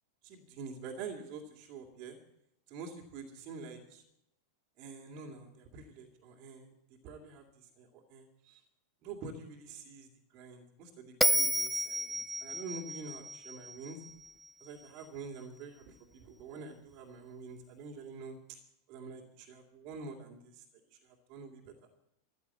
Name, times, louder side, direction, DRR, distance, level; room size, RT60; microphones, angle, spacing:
voice 1, 0.2-2.2 2.7-4.0 4.8-6.7 7.0-8.6 9.0-14.0 14.6-18.6 18.9-20.6 20.9-21.7, right 4 dB, 40° right, -2 dB, 2.5 m, -47 dB
Bell, 11.2-14.5, equal, ahead, 0.6 m, -32 dB
15.0 x 11.5 x 8.4 m, 0.82 s
figure-of-eight pair, 90°, 0 cm